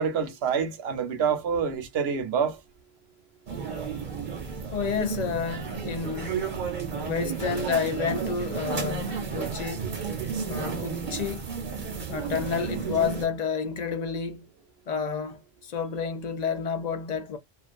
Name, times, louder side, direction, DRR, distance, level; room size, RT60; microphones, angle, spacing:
voice 1, 0.0-2.6 9.8-9.9, right 6 dB, 80° right, 0.9 m, -27 dB
sound 1, 3.5-13.3, right 6 dB, 55° right, 0.9 m, -32 dB
voice 2, 4.7-6.4 7.0-9.9 10.5-11.5 12.1-14.5 14.9-17.4, left 6 dB, 55° left, 0.5 m, -30 dB
2.4 x 2.2 x 2.4 m
omnidirectional pair, 1.1 m